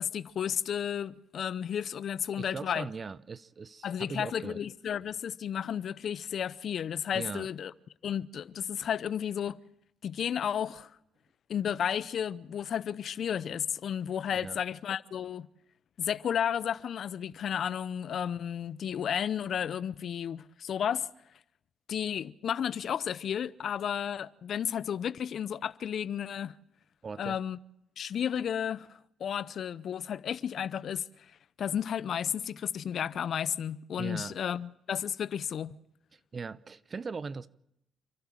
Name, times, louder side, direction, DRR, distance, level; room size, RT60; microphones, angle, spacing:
voice 1, 0.0-2.9 3.8-7.7 8.0-9.6 10.0-10.9 11.5-15.5 16.0-21.1 21.9-26.5 27.2-27.6 28.0-31.0 31.6-35.8, left 8 dB, 65° left, 0.7 m, -33 dB
voice 2, 2.4-4.6 7.1-7.5 14.4-14.6 27.0-27.4 34.0-34.4 36.1-37.5, right 5 dB, 45° right, 0.8 m, -40 dB
29.5 x 11.5 x 7.6 m
supercardioid pair, 55°, 0 cm